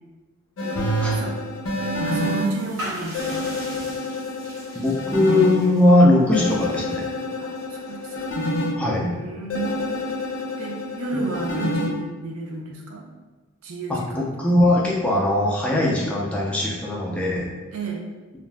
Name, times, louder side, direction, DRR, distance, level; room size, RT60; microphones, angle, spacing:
sound 1, 0.6-2.5 3.1-5.5 6.3-8.7 9.5-11.9, left 1 dB, 60° left, 0.5 m, -27 dB
voice 1, 0.6-1.4 2.0-3.5 7.4-8.4 8.8-10.1 10.6-13.0 13.6-14.4 17.7-18.0, right 3 dB, 85° right, 1 dB, 0.5 m, -32 dB
sound 2, 2.0-8.7, equal, 70° right, 1.1 m, -40 dB
voice 2, 4.7-7.1 8.7-9.1 11.1-11.2 13.9-17.5, left 1 dB, 5° left, -4 dB, 0.4 m, -20 dB
2.5 x 2.0 x 3.3 m, 1.3 s
head